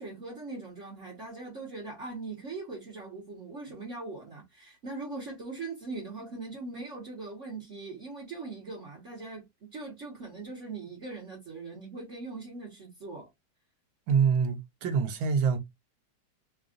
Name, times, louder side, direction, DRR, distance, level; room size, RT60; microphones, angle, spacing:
voice 1, 0.0-13.3, right 3 dB, 45° right, 1.3 m, -41 dB
voice 2, 14.1-15.6, right 6 dB, 90° right, 1.5 m, -25 dB
3.4 x 2.4 x 3.7 m
omnidirectional pair, 2.0 m